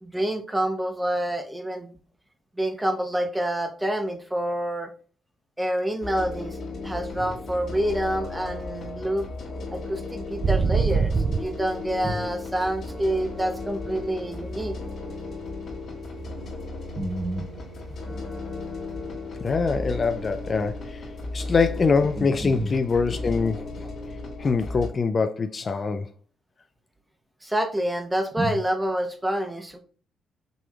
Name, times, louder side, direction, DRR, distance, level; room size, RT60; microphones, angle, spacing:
voice 1, 0.0-1.9 2.6-4.9 5.6-6.6 6.8-9.3 9.7-14.8 17.0-17.4 18.1-18.2 22.2-22.7 27.4-29.8, right 1 dB, 10° right, 0.9 m, -27 dB
sound 1, 6.0-24.9, left 2 dB, 60° left, 1.8 m, -35 dB
sound 2, 10.4-13.7 14.1-16.3 16.6-17.0 17.3-19.2 19.5-19.6 19.9-20.3 20.7-20.8 23.0-23.1, right 5 dB, 45° right, 0.3 m, -27 dB
voice 2, 19.4-23.9 24.4-26.1, left 4 dB, 40° left, 0.3 m, -24 dB
6.0 x 3.4 x 2.2 m
cardioid pair, 90°, 0 cm